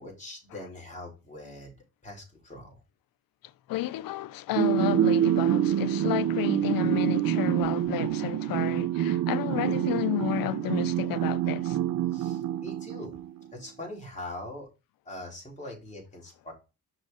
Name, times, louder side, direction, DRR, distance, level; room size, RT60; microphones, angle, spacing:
voice 1, 0.0-1.7 2.0-2.8 12.1-13.1 13.5-14.7 15.0-16.5, left 1 dB, 20° left, 4.6 m, -42 dB
voice 2, 3.7-11.8, left 14 dB, 80° left, 0.6 m, -31 dB
sound 1, 4.6-13.3, right 11 dB, 65° right, 0.5 m, -26 dB
6.6 x 6.4 x 3.8 m
cardioid pair, 110°, 34 cm